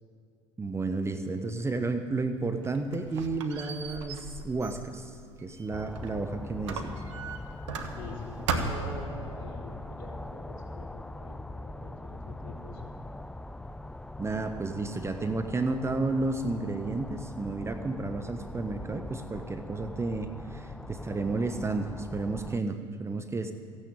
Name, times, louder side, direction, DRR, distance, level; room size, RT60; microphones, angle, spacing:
voice 1, 0.6-7.0 14.2-23.5, right 3 dB, 15° right, 7 dB, 1.1 m, -32 dB
Squeak, 2.4-6.2 6.7-8.2 8.5-9.0, right 5 dB, 75° right, 1.5 m, -36 dB
sound 1, 5.7-22.6, left 1 dB, 5° left, 0.4 m, -42 dB
voice 2, 7.9-12.8, left 3 dB, 60° left, -1 dB, 3.8 m, -45 dB
15.5 x 9.7 x 8.7 m, 2.5 s
hypercardioid pair, 80°, 15 cm